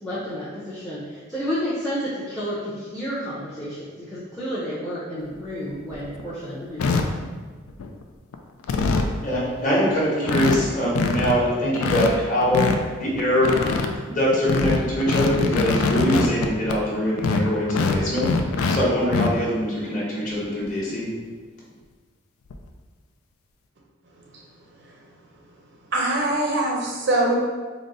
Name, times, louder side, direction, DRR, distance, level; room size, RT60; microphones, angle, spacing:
voice 1, 0.0-7.1, equal, 5° left, -9 dB, 0.6 m, -31 dB
sound 1, 5.3-5.4 5.9-6.2 6.8-7.0 7.7-8.0 8.3-8.4 8.6-9.1 9.6-9.7 9.9-10.0 10.2-10.6 10.8-11.3 11.8-12.8 13.2-13.9 14.3-16.8 17.2-18.8 19.0-19.3 20.7-20.8 21.2-21.3 22.5-22.7, left 4 dB, 85° left, 0.3 m, -23 dB
voice 2, 9.2-12.6 13.0-13.5 14.0-18.3 18.7-21.1, equal, 35° left, -6 dB, 1.0 m, -23 dB
voice 3, 25.9-27.3, right 2 dB, 55° right, -2 dB, 0.6 m, -23 dB
3.8 x 2.1 x 3.8 m, 1.4 s
head